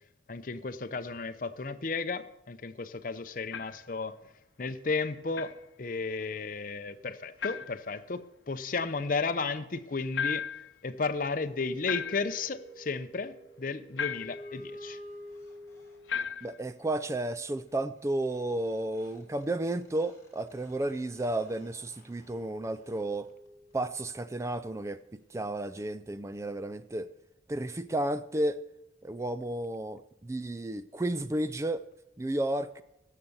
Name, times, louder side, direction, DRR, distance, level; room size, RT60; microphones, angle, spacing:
voice 1, 0.3-4.2 4.6-10.4 10.8-15.0, left 4 dB, 45° left, 0.6 m, -34 dB
sound 1, 3.5-3.9 5.3-5.6 7.4-7.8 10.1-10.7 11.9-12.5 14.0-14.5 16.1-16.6, left 7 dB, 85° left, 0.7 m, -35 dB
sound 2, 11.2-16.5 18.4-18.5 18.6-24.1, equal, 15° left, 3.2 m, -50 dB
voice 2, 16.4-23.3 23.7-27.1 27.5-28.6 29.0-31.9 32.2-32.8, right 1 dB, 15° right, 0.3 m, -32 dB
16.5 x 6.7 x 7.1 m
head